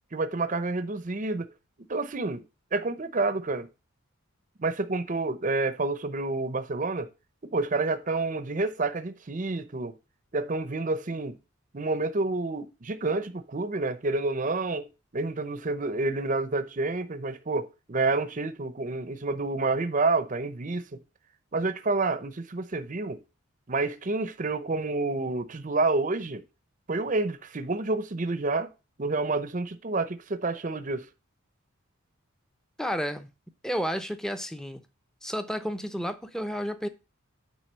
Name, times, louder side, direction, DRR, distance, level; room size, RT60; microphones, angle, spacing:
voice 1, 0.1-1.5 1.9-2.4 2.7-3.7 4.6-7.1 7.5-9.9 10.3-11.3 11.7-14.9 15.1-21.0 21.5-23.2 23.7-26.4 26.9-28.7 29.0-31.1, right 3 dB, 35° right, 0.7 m, -29 dB
voice 2, 32.8-33.3 33.6-34.8 35.2-36.9, equal, 5° left, 0.7 m, -31 dB
9.4 x 3.6 x 6.6 m
head